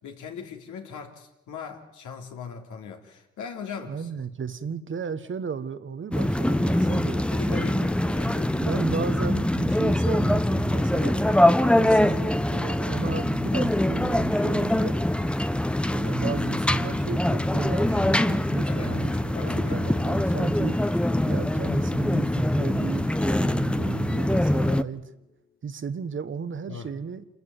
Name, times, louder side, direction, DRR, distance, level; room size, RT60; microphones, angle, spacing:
voice 1, 0.0-4.1 6.6-7.0 7.3-8.6 18.7-18.9 19.3-19.8 26.7-26.9, left 6 dB, 75° left, 3.4 m, -39 dB
voice 2, 3.7-7.9 8.7-11.2 11.7-15.0 15.8-20.8 21.2-25.1 25.6-27.3, right 6 dB, 40° right, 1.3 m, -35 dB
sound 1, 6.1-24.8, left 1 dB, 5° left, 0.7 m, -23 dB
sound 2, 16.4-25.3, left 6 dB, 30° left, 1.0 m, -44 dB
27.0 x 14.0 x 9.8 m
cardioid pair, 90°, 30 cm